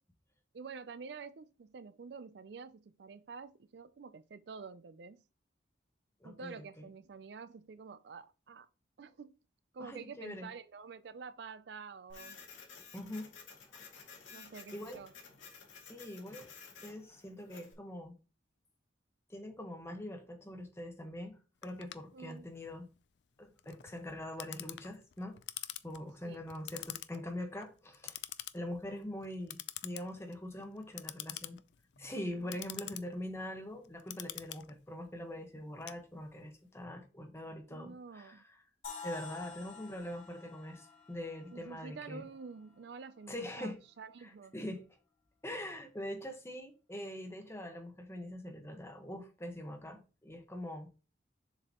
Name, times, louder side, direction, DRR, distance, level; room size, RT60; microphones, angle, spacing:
voice 1, 0.5-5.2 6.2-8.7 9.0-9.3 9.7-12.4 14.3-15.1 22.1-22.5 26.2-26.4 32.4-32.6 37.7-38.4 41.5-44.5, right 5 dB, 60° right, 0.4 m, -48 dB
voice 2, 6.2-6.6 9.8-10.5 12.9-13.3 13.9-14.1 14.7-15.0 15.9-16.5 16.8-18.2 19.3-22.9 23.4-25.4 25.8-28.2 28.5-31.6 32.0-38.4 39.0-42.2 43.3-43.8 44.2-44.9 45.4-50.9, left 1 dB, 15° left, 1.2 m, -43 dB
Printer, 12.1-17.7, left 5 dB, 90° left, 2.3 m, -53 dB
Clock, 21.6-36.6, left 14 dB, 65° left, 0.4 m, -47 dB
sound 1, 38.8-42.7, left 6 dB, 45° left, 3.4 m, -49 dB
7.1 x 4.9 x 2.9 m
head